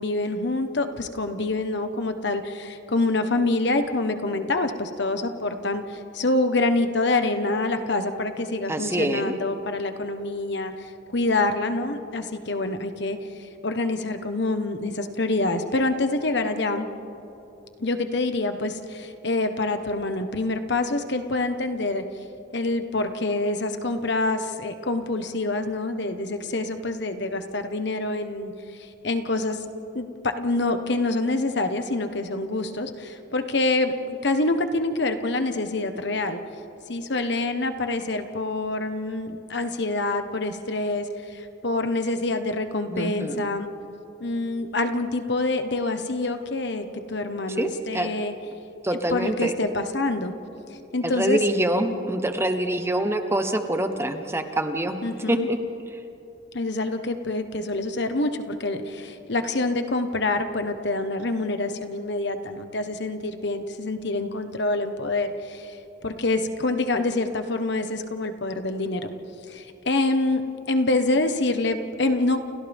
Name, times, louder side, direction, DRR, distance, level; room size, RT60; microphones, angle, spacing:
voice 1, 0.0-16.9 17.8-22.0 22.5-28.5 28.8-29.6 29.9-36.4 36.9-43.7 44.2-48.3 49.1-50.3 50.9-51.4 55.0-55.5 56.5-65.8 66.0-69.1 69.5-72.5, left 2 dB, 60° left, 7 dB, 1.3 m, -26 dB
voice 2, 8.7-9.3 42.9-43.4 47.6-48.1 48.8-49.5 51.0-55.0 55.3-55.6 55.9-56.0, right 1 dB, 15° right, 6 dB, 1.0 m, -25 dB
30.0 x 29.5 x 3.6 m, 2.9 s
head